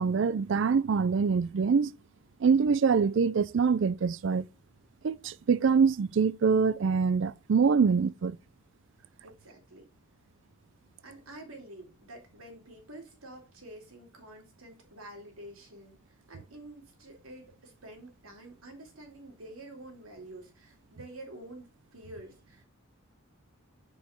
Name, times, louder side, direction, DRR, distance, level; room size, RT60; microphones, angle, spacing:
voice 1, 0.0-1.9 2.4-4.5 5.0-8.4, right 5 dB, 60° right, 0.4 m, -25 dB
voice 2, 9.2-9.9 11.0-22.6, right 1 dB, 85° right, 2.9 m, -48 dB
6.6 x 4.9 x 5.9 m
head